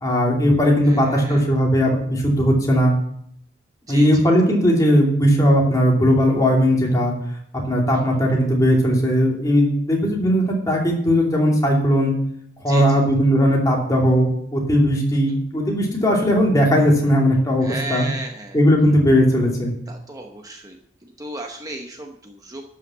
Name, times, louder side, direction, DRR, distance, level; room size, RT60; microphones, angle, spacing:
voice 1, 0.0-2.9 3.9-7.1 7.7-12.1 12.6-18.1 18.5-19.7, equal, 20° left, -2 dB, 2.7 m, -18 dB
voice 2, 0.8-1.5 3.9-4.3 12.7-13.0 15.3-15.4 17.6-18.6 19.9-22.6, right 2 dB, 20° right, 2 dB, 0.9 m, -34 dB
12.5 x 5.7 x 7.3 m, 0.68 s
head